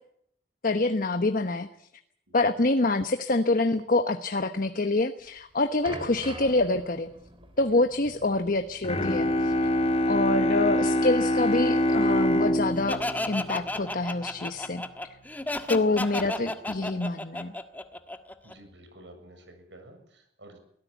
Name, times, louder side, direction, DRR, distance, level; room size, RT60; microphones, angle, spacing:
voice 1, 0.6-1.7 2.3-7.1 7.6-9.5 10.1-14.8 15.7-17.5, left 2 dB, 50° left, 8 dB, 1.1 m, -26 dB
sound 1, 5.2-10.1 10.4-10.6 11.3-11.4, right 1 dB, 30° right, 3.4 m, -45 dB
Bowed string instrument, 8.8-14.5, left 1 dB, 35° left, 1.6 m, -25 dB
Laughter, 12.9-18.5, left 1 dB, 10° left, 1.5 m, -33 dB
voice 2, 15.8-16.5 18.4-20.6, right 1 dB, 80° right, 6 dB, 7.1 m, -51 dB
24.0 x 17.5 x 8.3 m, 0.71 s
head